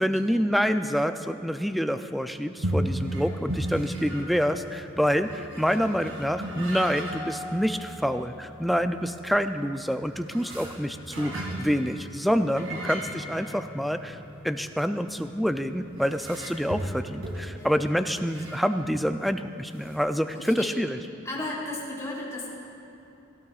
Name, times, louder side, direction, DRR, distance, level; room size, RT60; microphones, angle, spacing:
voice 1, 0.0-14.2 14.4-21.0, equal, ahead, 8 dB, 0.3 m, -27 dB
sound 1, 2.6-19.0 19.4-19.5 19.7-20.0, right 1 dB, 75° right, 2.3 m, -36 dB
voice 2, 12.4-13.0 17.5-17.8 18.1-18.2 18.5-18.6 20.3-20.7 21.2-22.5, left 2 dB, 15° left, -6 dB, 3.1 m, -36 dB
17.5 x 16.0 x 2.4 m, 2.9 s
head